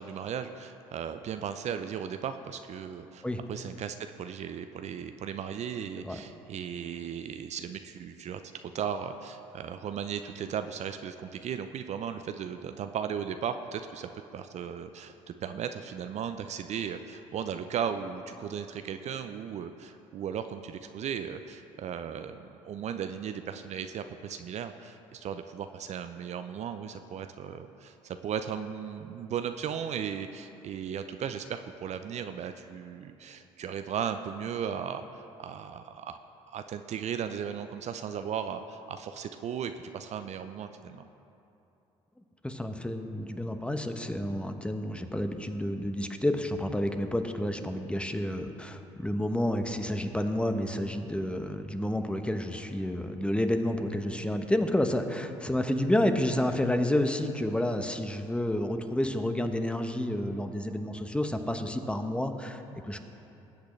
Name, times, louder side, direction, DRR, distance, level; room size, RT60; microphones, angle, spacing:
voice 1, 0.0-36.2 36.5-41.0, right 8 dB, 50° right, 8 dB, 0.5 m, -36 dB
voice 2, 42.4-63.0, left 1 dB, 5° left, 7 dB, 1.0 m, -30 dB
20.0 x 8.2 x 3.3 m, 2.9 s
hypercardioid pair, 60°, 15 cm